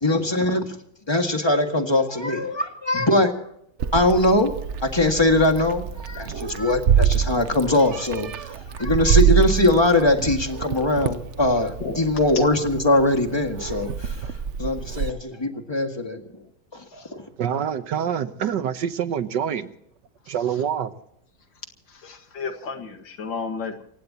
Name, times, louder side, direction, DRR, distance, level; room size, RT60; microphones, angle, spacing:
voice 1, 0.0-0.8 1.1-3.3 3.9-4.5 4.8-14.2 14.6-16.2 16.7-17.2, left 2 dB, 15° left, 1.8 m, -21 dB
Meow, 3.8-15.1, right 9 dB, 55° right, 0.8 m, -25 dB
voice 2, 16.7-17.1 20.3-20.4 21.9-23.8, left 5 dB, 90° left, 2.6 m, -33 dB
voice 3, 17.4-19.7 20.3-20.9, right 8 dB, 75° right, 1.6 m, -26 dB
28.5 x 16.0 x 2.9 m
omnidirectional pair, 2.0 m